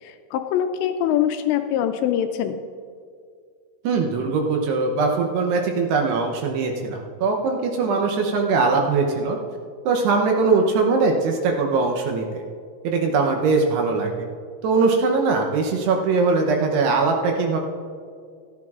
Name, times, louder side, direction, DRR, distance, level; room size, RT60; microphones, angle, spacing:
voice 1, 0.0-2.6, left 10 dB, 85° left, 7 dB, 2.6 m, -23 dB
voice 2, 3.8-9.4 9.9-12.4 12.8-14.3 14.6-17.6, right 4 dB, 75° right, 2 dB, 2.6 m, -21 dB
16.5 x 13.5 x 2.4 m, 2.2 s
omnidirectional pair, 5.4 m